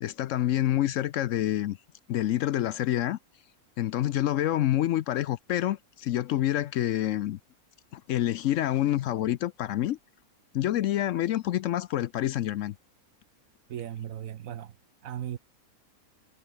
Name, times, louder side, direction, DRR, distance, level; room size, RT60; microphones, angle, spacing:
voice 1, 0.0-1.8 2.1-3.2 3.8-7.4 7.9-10.0 10.5-12.8, left 13 dB, 70° left, 0.8 m, -27 dB
voice 2, 13.7-14.8 15.0-15.4, right 10 dB, 70° right, 1.2 m, -37 dB
omnidirectional pair, 1.5 m